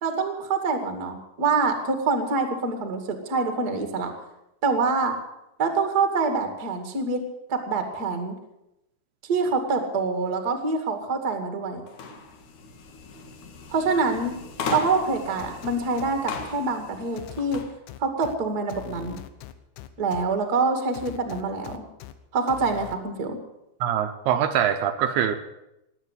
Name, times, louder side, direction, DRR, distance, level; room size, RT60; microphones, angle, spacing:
voice 1, 0.0-4.1 4.6-5.1 5.6-8.4 9.2-11.8 13.7-14.4 14.7-17.6 18.0-19.2 20.0-21.8 22.3-23.4, right 4 dB, 35° right, 6 dB, 1.7 m, -25 dB
sound 1, 11.9-17.7, left 4 dB, 55° left, 2.7 m, -37 dB
sound 2, 15.4-16.5 17.2-18.4 18.7-20.2 20.9-22.1 22.5-23.0, left 13 dB, 85° left, 3.0 m, -41 dB
voice 2, 23.8-25.4, right 9 dB, 75° right, 6 dB, 2.7 m, -23 dB
19.5 x 8.8 x 8.2 m, 0.87 s
omnidirectional pair, 4.9 m